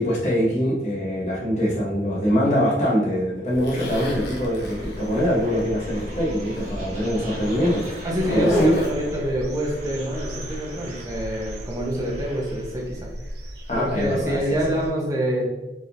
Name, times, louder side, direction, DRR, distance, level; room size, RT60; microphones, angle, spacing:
voice 1, 0.0-8.7 13.7-14.4, equal, 40° left, -4 dB, 1.0 m, -23 dB
sound 1, 3.5-12.9, equal, 40° right, 1.4 m, -40 dB
Zipper (clothing), 3.6-6.1 6.4-6.7 7.3-8.9, equal, 80° left, 1.0 m, -31 dB
sound 2, 3.9-14.9, equal, 70° right, 0.6 m, -37 dB
voice 2, 8.0-13.1 13.7-15.5, equal, 20° right, -2 dB, 0.9 m, -26 dB
4.5 x 3.6 x 2.6 m, 1.0 s
head